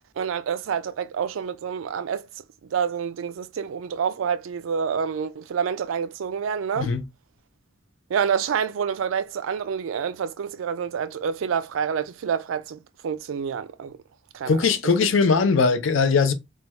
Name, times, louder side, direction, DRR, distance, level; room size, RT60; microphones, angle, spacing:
voice 1, 0.2-2.3 2.7-6.9 8.1-14.0 14.3-14.7 15.0-15.1, right 7 dB, 80° right, 0.4 m, -28 dB
voice 2, 14.5-16.3, left 5 dB, 75° left, 0.5 m, -20 dB
3.2 x 2.3 x 2.8 m
head